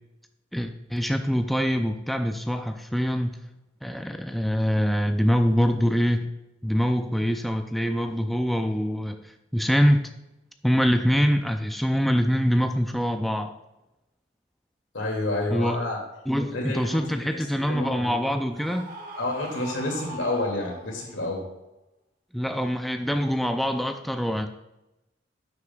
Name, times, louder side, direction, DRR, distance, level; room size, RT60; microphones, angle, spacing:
voice 1, 0.5-3.4 3.8-6.3 6.6-10.1 10.6-13.6 15.5-15.8 16.3-18.9 22.3-24.5, equal, ahead, 6 dB, 0.4 m, -24 dB
voice 2, 14.9-16.0 16.5-17.4 17.7-18.1 19.2-21.4, left 2 dB, 85° left, 0 dB, 2.4 m, -29 dB
Screaming, 18.5-21.2, right 2 dB, 50° right, 1.4 m, -40 dB
10.5 x 8.1 x 2.3 m, 0.94 s
head